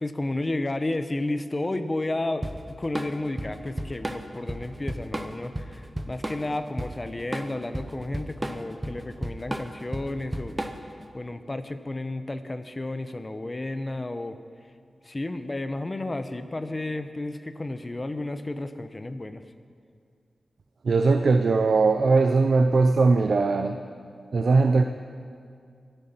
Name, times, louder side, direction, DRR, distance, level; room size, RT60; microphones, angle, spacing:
voice 1, 0.0-2.5 2.8-10.6 11.1-14.4 15.0-19.4, left 2 dB, 30° left, 9 dB, 0.9 m, -32 dB
Drum kit / Drum, 2.4-11.0, right 1 dB, 15° right, 0.9 m, -33 dB
voice 2, 20.8-23.8 24.3-24.8, right 3 dB, 75° right, 6 dB, 0.6 m, -20 dB
25.0 x 9.1 x 5.8 m, 2.3 s
wide cardioid pair, 105°, 0 cm